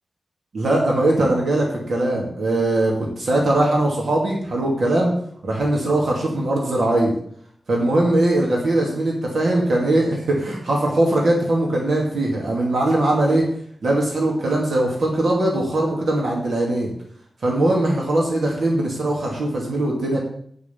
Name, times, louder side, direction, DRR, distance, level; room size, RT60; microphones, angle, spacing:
voice 1, 0.5-5.1 5.4-7.1 7.7-13.4 13.8-16.9 17.4-20.2, right 1 dB, 65° right, -2 dB, 2.5 m, -20 dB
9.7 x 5.8 x 6.9 m, 0.65 s
wide cardioid pair, 145°, 0 cm